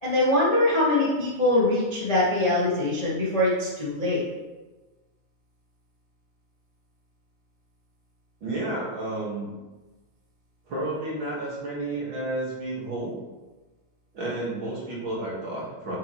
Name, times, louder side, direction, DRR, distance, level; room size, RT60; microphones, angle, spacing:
voice 1, 0.0-4.2, left 1 dB, 25° left, -8 dB, 0.8 m, -23 dB
voice 2, 8.4-9.5 10.7-13.1 14.1-16.0, right 2 dB, 45° right, -6 dB, 2.1 m, -31 dB
7.5 x 6.5 x 3.1 m, 1.2 s
omnidirectional pair, 3.6 m